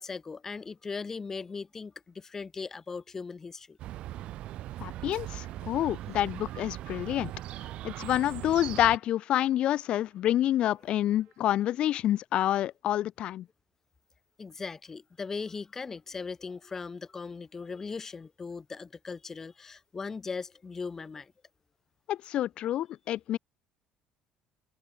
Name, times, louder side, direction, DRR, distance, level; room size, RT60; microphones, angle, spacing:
voice 1, 0.0-3.8 14.4-21.3, left 4 dB, 20° left, 0.9 m, -39 dB
Chirp tweet, 3.8-9.0, right 14 dB, 55° right, 0.6 m, -39 dB
Trumpet, 4.3-12.0, right 25 dB, 90° right, 7.3 m, -68 dB
voice 2, 4.8-7.3 7.8-13.5 22.1-23.4, left 12 dB, 50° left, 0.6 m, -28 dB
cardioid pair, 155°, 2 cm